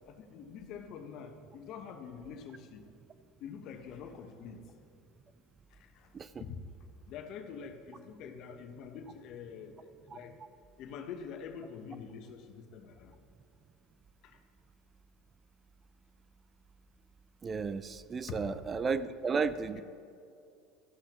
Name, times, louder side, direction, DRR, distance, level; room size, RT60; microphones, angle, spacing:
voice 1, 0.1-2.9 3.4-4.7 5.7-6.1 6.4-6.6 7.0-10.4 10.8-13.2 14.2-14.4 18.3-18.4 19.7-19.8, left 7 dB, 55° left, 6 dB, 1.1 m, -46 dB
voice 2, 17.4-19.8, right 5 dB, 30° right, 14 dB, 0.4 m, -33 dB
14.5 x 11.5 x 3.0 m, 2.5 s
hypercardioid pair, 80°, 0 cm